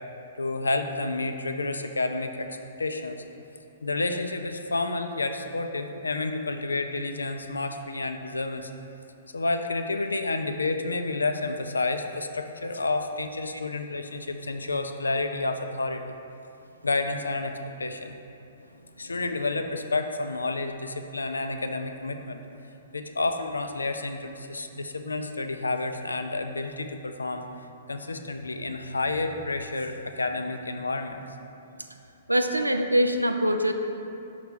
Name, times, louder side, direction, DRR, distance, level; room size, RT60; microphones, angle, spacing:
voice 1, 0.4-3.2 3.8-8.7 9.3-16.1 16.8-18.2 19.0-22.4 22.9-27.5 27.9-31.2, left 3 dB, 75° left, 6 dB, 0.4 m, -30 dB
voice 2, 32.3-33.7, equal, 85° right, 5 dB, 0.4 m, -23 dB
5.7 x 3.3 x 5.3 m, 2.7 s
figure-of-eight pair, 115°, 0 cm